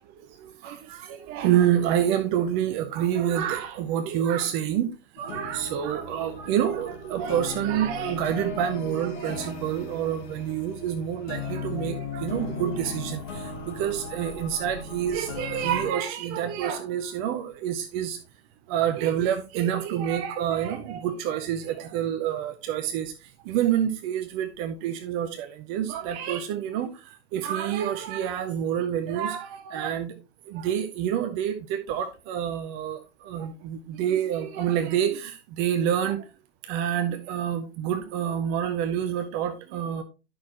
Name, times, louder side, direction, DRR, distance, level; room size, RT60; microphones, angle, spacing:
voice 1, 0.6-4.9 5.2-18.2 18.7-23.1 23.5-26.9 27.3-30.1 30.5-33.0 33.3-36.2 36.7-40.0, right 10 dB, 15° right, 0.4 m, -27 dB
sound 1, 5.2-15.9, left 4 dB, 40° left, 2.6 m, -37 dB
11.0 x 6.1 x 2.9 m
figure-of-eight pair, 115°, 35 cm